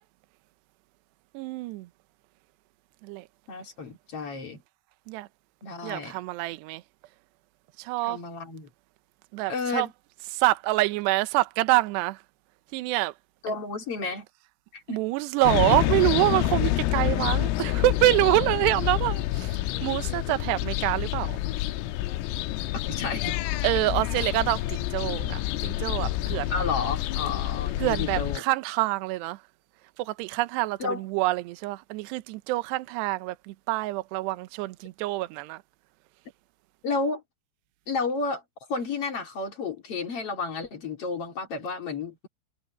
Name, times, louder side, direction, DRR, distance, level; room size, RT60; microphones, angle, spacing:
voice 1, 1.3-1.9 3.0-3.2 5.1-5.3 5.8-6.8 7.8-8.2 9.3-9.9 10.3-12.2 12.7-13.1 14.9-21.4 23.6-26.6 27.8-29.4 30.0-35.6, right 19 dB, 80° right, 2.5 m, -26 dB
voice 2, 3.5-4.6 5.6-6.2 8.0-8.7 9.5-9.9 13.4-14.3 14.7-15.0 22.9-23.4 26.5-28.4 30.8-31.0 36.8-37.2 37.9-38.4 38.7-42.3, left 4 dB, 45° left, 2.0 m, -31 dB
sound 1, 15.4-28.4, left 15 dB, 85° left, 3.4 m, -28 dB
omnidirectional pair, 6.0 m